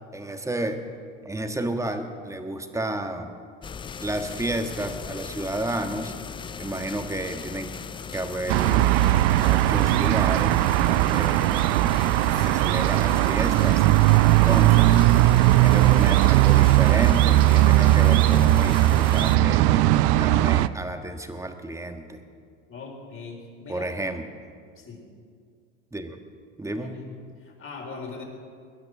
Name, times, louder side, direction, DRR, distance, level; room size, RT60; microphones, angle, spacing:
voice 1, 0.1-0.8 1.2-3.4 4.0-6.2 6.6-7.7 8.1-8.9 9.4-11.6 12.3-13.9 14.2-15.0 15.5-19.8 20.2-22.2 23.7-24.2 25.9-26.2 26.6-27.0, right 1 dB, 10° right, 6 dB, 1.5 m, -31 dB
sound 1, 3.6-19.4, left 6 dB, 15° left, 0.4 m, -38 dB
sound 2, 8.5-20.7, right 16 dB, 60° right, 0.6 m, -18 dB
voice 2, 22.7-23.9 24.8-25.1 26.7-27.1 27.4-28.2, left 4 dB, 35° left, 1 dB, 4.2 m, -40 dB
21.0 x 10.5 x 6.2 m, 2.1 s
hypercardioid pair, 90°, 37 cm